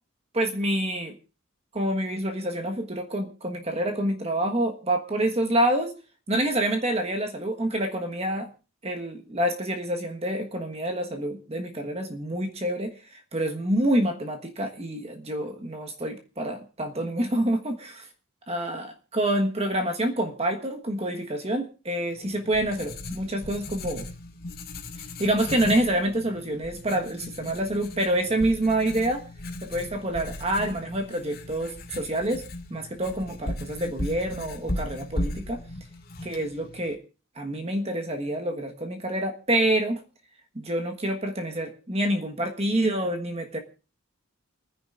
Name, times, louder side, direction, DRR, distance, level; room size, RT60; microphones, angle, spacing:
voice 1, 0.3-1.2 1.7-5.9 6.3-8.5 8.8-18.1 18.5-24.0 25.2-29.2 29.6-32.4 32.7-35.6 36.2-37.0 37.4-40.0 40.5-43.6, right 1 dB, 30° right, 4 dB, 1.4 m, -27 dB
Writing, 22.1-36.9, left 1 dB, 45° left, 1.8 m, -37 dB
29.0 x 10.0 x 2.5 m, 0.34 s
head